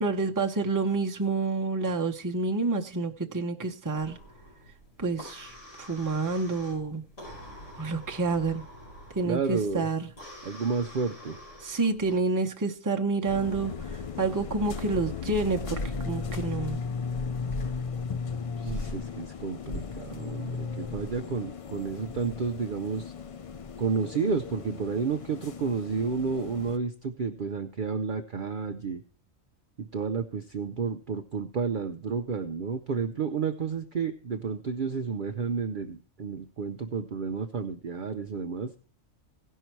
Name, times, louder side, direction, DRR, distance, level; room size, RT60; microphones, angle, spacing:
voice 1, 0.0-4.2 5.0-7.0 7.8-8.6 9.1-10.1 11.6-15.8 16.0-16.8, right 3 dB, 15° right, 2 dB, 0.8 m, -28 dB
sound 1, 3.9-12.2, equal, 75° left, 5.6 m, -47 dB
voice 2, 9.2-9.9 10.4-11.4 18.6-23.1 23.8-29.0 29.8-38.7, right 5 dB, 50° right, 6 dB, 0.7 m, -31 dB
sound 2, 13.3-26.8, left 5 dB, 60° left, 0.3 m, -36 dB
16.5 x 5.6 x 4.5 m, 0.38 s
omnidirectional pair, 1.3 m